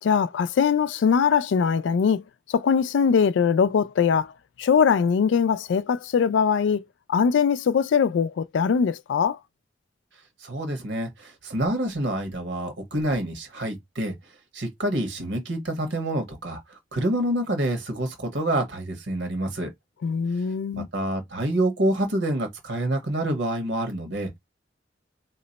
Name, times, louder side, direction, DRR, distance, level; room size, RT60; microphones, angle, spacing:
voice 1, 0.0-2.2 2.5-4.3 4.6-6.8 7.1-9.4 20.0-20.9, left 6 dB, 80° left, 0.3 m, -21 dB
voice 2, 10.4-14.1 14.5-19.7 20.7-24.4, right 1 dB, 70° right, 1.3 m, -27 dB
2.9 x 2.1 x 4.0 m
head